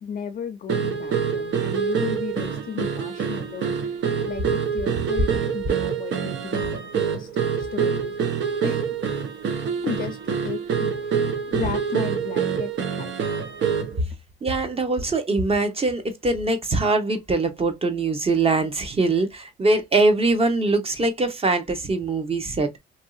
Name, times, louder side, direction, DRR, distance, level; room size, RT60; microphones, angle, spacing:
voice 1, 0.0-7.3 7.6-8.2 8.6-8.9 9.8-13.4, left 7 dB, 45° left, 0.5 m, -35 dB
sound 1, 0.7-14.0, right 7 dB, 70° right, 0.7 m, -26 dB
voice 2, 14.4-22.7, right 3 dB, 30° right, 0.9 m, -22 dB
2.9 x 2.6 x 2.3 m
cardioid pair, 90°, 20 cm